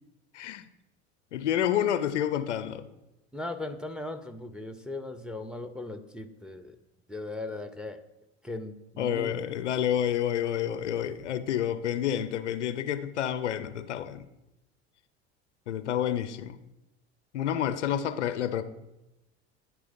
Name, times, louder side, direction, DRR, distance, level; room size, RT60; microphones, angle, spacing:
voice 1, 0.3-0.7 1.3-2.9 9.0-14.2 15.7-16.6 17.3-18.6, left 10 dB, 90° left, 12 dB, 0.5 m, -29 dB
voice 2, 3.3-6.8 7.1-8.0 8.4-9.3, left 2 dB, ahead, 9 dB, 0.5 m, -38 dB
9.7 x 3.4 x 5.1 m, 0.94 s
hypercardioid pair, 70°, 35 cm